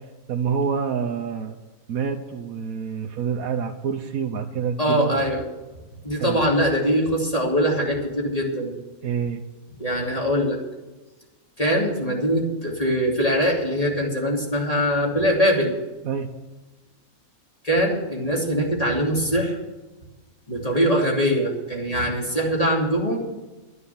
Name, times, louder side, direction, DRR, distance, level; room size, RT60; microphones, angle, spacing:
voice 1, 0.3-1.6 1.9-5.1 6.2-6.4 9.0-9.4 16.0-16.3, right 6 dB, 85° right, 3 dB, 1.3 m, -27 dB
voice 2, 4.8-5.4 6.0-8.7 9.8-10.6 11.6-15.7 17.6-19.6 20.5-23.2, equal, 25° left, -2 dB, 3.0 m, -22 dB
12.5 x 9.8 x 7.1 m, 1.2 s
omnidirectional pair, 1.5 m